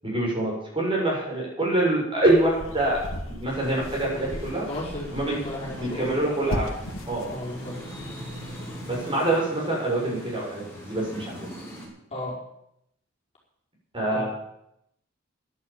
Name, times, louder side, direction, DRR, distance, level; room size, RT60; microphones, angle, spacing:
voice 1, 0.0-3.0 3.3-4.7 5.1-5.4 5.7-6.7 7.1-7.3 8.9-11.5 13.9-14.2, right 2 dB, 25° right, -4 dB, 6.9 m, -25 dB
sound 1, 2.3-9.0, equal, 75° left, 2.1 m, -38 dB
sound 2, 3.4-11.9, equal, 10° left, 6.8 m, -41 dB
voice 2, 4.7-6.1 7.3-7.8 12.1-12.3 14.1-14.2, left 1 dB, 30° left, -5 dB, 5.0 m, -34 dB
12.0 x 11.0 x 8.9 m, 0.77 s
head